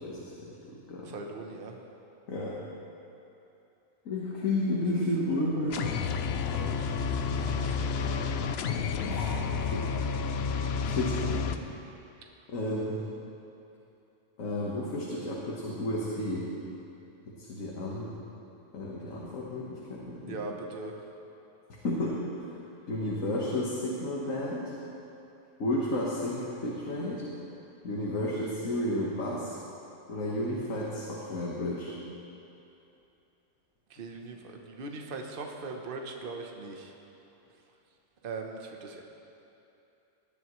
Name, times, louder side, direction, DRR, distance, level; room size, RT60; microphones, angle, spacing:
voice 1, 0.0-1.2 2.3-2.6 4.1-5.9 7.3-7.5 9.0-9.9 10.8-11.4 12.5-13.0 14.4-16.5 17.4-18.1 18.7-20.4 21.8-22.5 22.9-24.7 25.6-27.3 27.8-29.6 30.1-31.9, left 1 dB, 85° left, -5 dB, 1.7 m, -32 dB
voice 2, 1.0-1.8 4.9-5.9 6.2-6.3 6.5-8.6 9.0-9.1 20.2-21.0 33.9-36.9 38.2-39.0, right 3 dB, 45° right, 2 dB, 1.1 m, -41 dB
sound 1, 5.7-11.6, left 6 dB, 65° left, 0.7 m, -30 dB
19.0 x 10.5 x 3.1 m, 2.8 s
omnidirectional pair, 1.3 m